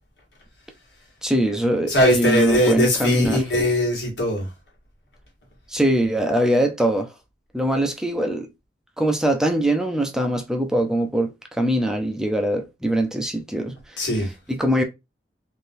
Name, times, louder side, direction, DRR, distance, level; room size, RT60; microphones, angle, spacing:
voice 1, 1.2-3.4 5.7-7.1 7.5-8.5 9.0-11.3 11.6-14.1 14.5-14.8, right 1 dB, 5° right, 0.4 m, -22 dB
voice 2, 1.9-4.5 14.0-14.3, left 1 dB, 80° left, 1.5 m, -20 dB
3.6 x 2.6 x 2.6 m
head